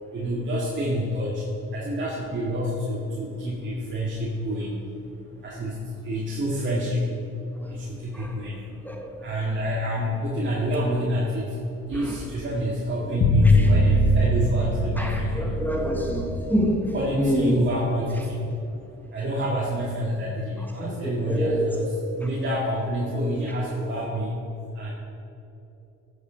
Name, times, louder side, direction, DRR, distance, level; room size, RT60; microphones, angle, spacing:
voice 1, 0.1-8.8 9.1-15.9 16.9-18.4 18.7-24.3 24.7-24.9, equal, 40° right, -6 dB, 2.3 m, -28 dB
sound 1, 13.2-17.3, left 1 dB, 45° left, 1.4 m, -21 dB
voice 2, 15.0-17.6 20.8-21.7, equal, 5° left, 1 dB, 1.4 m, -26 dB
12.5 x 7.4 x 5.3 m, 2.9 s
cardioid pair, 90°, 30 cm